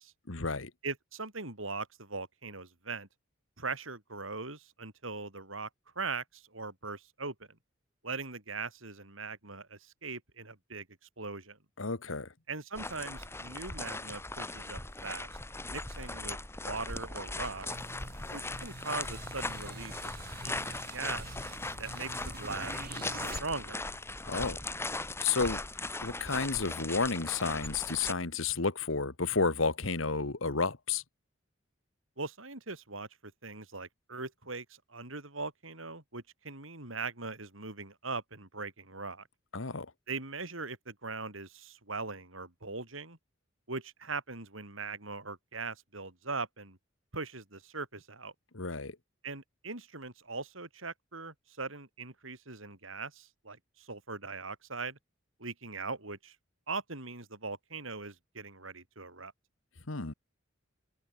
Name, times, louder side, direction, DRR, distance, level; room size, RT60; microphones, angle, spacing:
voice 1, 0.3-0.7 11.8-12.3 24.2-24.6 25.2-25.6 26.0-31.0 39.5-39.9 48.5-48.9 59.9-60.1, left 4 dB, 85° left, 1.8 m, -31 dB
voice 2, 0.8-3.1 3.6-5.7 6.0-7.5 8.0-10.9 11.2-11.6 12.5-15.3 15.7-16.4 16.6-17.7 18.3-21.4 21.8-23.8 32.2-39.3 40.1-43.2 43.7-46.8 47.1-48.3 49.2-55.0 55.4-56.4 56.7-59.3, right 4 dB, 85° right, 5.9 m, -40 dB
sound 1, 12.7-28.1, left 2 dB, 15° left, 3.0 m, -39 dB
sound 2, 17.2-23.4, right 2 dB, 50° right, 6.1 m, -46 dB
head